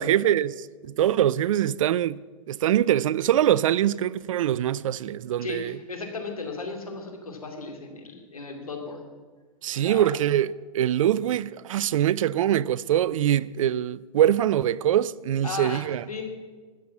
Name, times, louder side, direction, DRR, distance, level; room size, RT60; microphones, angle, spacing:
voice 1, 0.0-2.2 2.5-5.8 9.6-16.0, right 11 dB, 70° right, 0.4 m, -23 dB
voice 2, 5.4-9.1 9.7-10.1 15.4-16.2, left 3 dB, 90° left, 2.5 m, -36 dB
13.0 x 7.7 x 7.3 m
hypercardioid pair, 115°, 18 cm